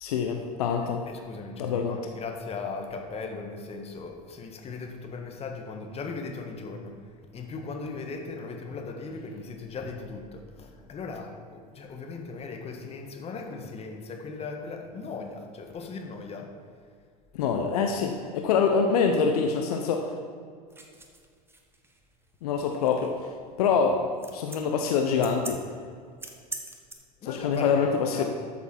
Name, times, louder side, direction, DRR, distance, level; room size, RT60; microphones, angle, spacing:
voice 1, 0.0-1.0 1.6-2.0 17.3-20.1 22.4-23.1 23.6-24.0 24.3-25.6 27.2-28.2, left 6 dB, 65° left, 4 dB, 0.9 m, -25 dB
voice 2, 1.1-7.0 7.3-16.5 27.2-28.2, left 4 dB, 30° left, 3 dB, 1.6 m, -38 dB
sound 1, 20.7-26.9, right 2 dB, 10° right, 1.4 m, -43 dB
12.5 x 7.0 x 4.5 m, 2.1 s
figure-of-eight pair, 80°, 21 cm